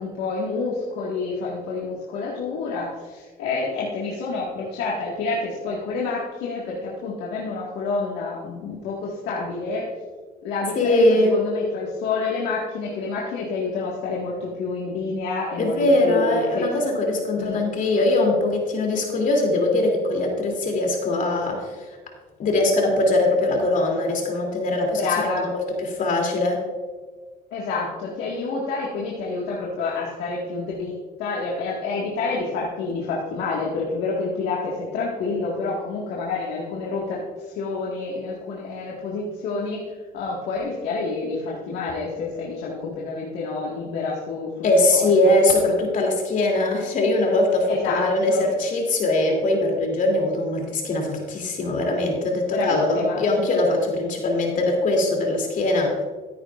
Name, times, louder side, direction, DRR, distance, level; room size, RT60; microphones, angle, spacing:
voice 1, 0.0-9.9 10.4-15.8 16.0-16.7 17.3-17.6 25.0-25.5 27.5-45.1 47.7-48.5 52.5-53.3, left 3 dB, 90° left, -4 dB, 1.8 m, -28 dB
voice 2, 10.8-11.3 15.6-21.7 22.4-25.5 25.8-26.6 44.6-56.0, left 2 dB, 50° left, 1 dB, 2.9 m, -21 dB
14.5 x 9.4 x 2.5 m, 1.4 s
cardioid pair, 110°, 17 cm